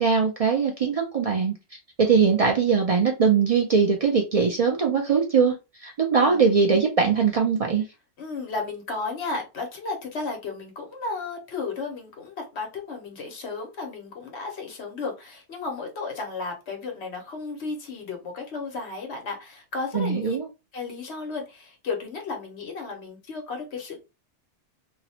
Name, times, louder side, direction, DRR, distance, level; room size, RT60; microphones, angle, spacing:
voice 1, 0.0-1.5 2.0-7.9 19.9-20.5, right 5 dB, 60° right, 1 dB, 0.3 m, -21 dB
voice 2, 8.2-20.4 20.7-24.0, left 4 dB, 70° left, 3 dB, 1.1 m, -34 dB
2.7 x 2.0 x 2.8 m, 0.27 s
omnidirectional pair, 1.2 m